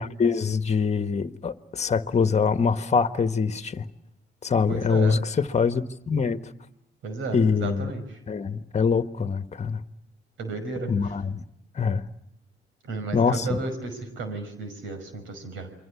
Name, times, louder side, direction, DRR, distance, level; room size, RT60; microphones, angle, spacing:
voice 1, 0.0-3.9 4.4-6.5 7.3-7.9 8.3-9.8 10.9-11.4 11.7-12.1 13.1-13.6, left 5 dB, 35° left, 1.5 m, -24 dB
voice 2, 4.7-5.2 7.0-8.2 10.4-11.1 12.8-15.7, right 3 dB, 80° right, 5.8 m, -33 dB
28.5 x 24.0 x 8.5 m
cardioid pair, 90°, 20 cm